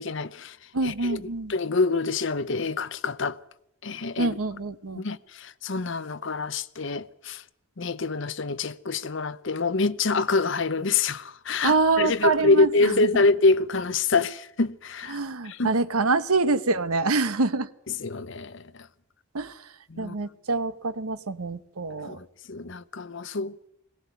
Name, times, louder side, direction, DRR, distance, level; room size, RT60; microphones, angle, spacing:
voice 1, 0.0-0.6 0.8-1.2 1.5-3.4 3.8-4.4 4.9-7.4 7.8-15.2 15.4-15.7 18.0-18.9 19.9-20.1 22.0-23.7, left 3 dB, 55° left, 0.7 m, -26 dB
voice 2, 0.7-1.5 4.2-5.0 11.6-13.2 15.1-17.7 19.3-22.2, right 3 dB, 90° right, 1.0 m, -26 dB
21.5 x 17.5 x 8.1 m
head